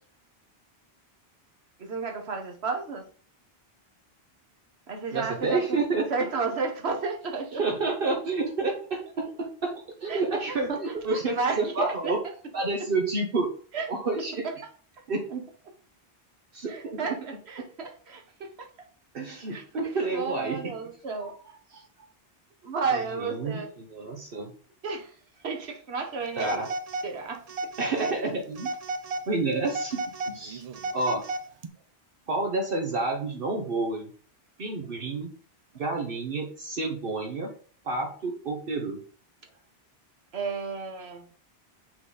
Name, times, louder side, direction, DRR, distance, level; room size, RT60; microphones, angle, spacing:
voice 1, 1.8-3.0 4.9-5.8 6.1-7.6 10.1-10.2 10.7-10.8 11.1-12.1 13.7-13.9 16.7-18.7 19.5-19.6 20.1-21.8 22.6-23.7 24.8-25.1 25.4-26.6 27.0-27.4 40.3-41.3, right 4 dB, 90° right, 3 dB, 1.4 m, -32 dB
voice 2, 5.1-6.1 7.5-12.2 12.5-13.5 13.9-14.4 15.1-15.4 16.5-17.1 19.1-20.7 22.9-24.5 26.4-26.7 27.8-28.7 29.3-30.0 30.3-30.6 30.9-31.2 32.3-34.1 34.6-35.3 35.7-37.5 37.8-39.0, right 3 dB, 65° right, 2 dB, 1.1 m, -29 dB
Telephone, 26.4-27.1 27.5-28.2 28.6-29.3 29.6-31.7, right 2 dB, 50° right, 0.5 m, -33 dB
6.1 x 3.9 x 4.0 m, 0.43 s
omnidirectional pair, 1.0 m